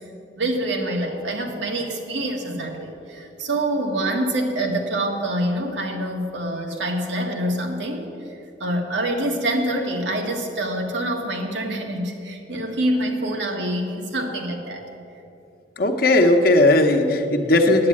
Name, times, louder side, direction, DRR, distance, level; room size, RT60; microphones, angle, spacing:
voice 1, 0.4-8.1 8.6-14.8, right 1 dB, 90° right, 2 dB, 1.6 m, -26 dB
voice 2, 15.8-17.9, left 2 dB, 55° left, 5 dB, 0.9 m, -17 dB
9.5 x 8.6 x 8.5 m, 2.8 s
head